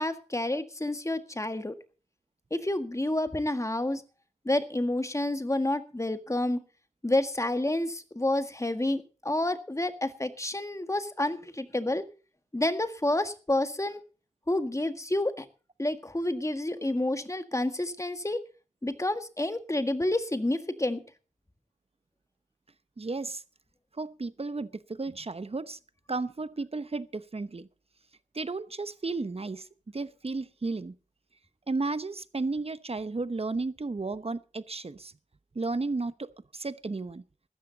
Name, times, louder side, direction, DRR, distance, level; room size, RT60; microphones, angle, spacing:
voice 1, 0.0-1.7 2.5-4.0 4.5-6.6 7.0-12.0 12.5-14.0 14.5-15.5 15.8-18.5 18.8-21.0, left 1 dB, 25° left, 1.8 m, -29 dB
voice 2, 23.0-23.4 24.0-25.8 26.1-27.7 28.3-29.7 29.9-30.9 31.7-35.1 35.5-37.2, right 3 dB, 50° right, 0.9 m, -33 dB
16.0 x 13.5 x 4.1 m
wide cardioid pair, 50°, 13 cm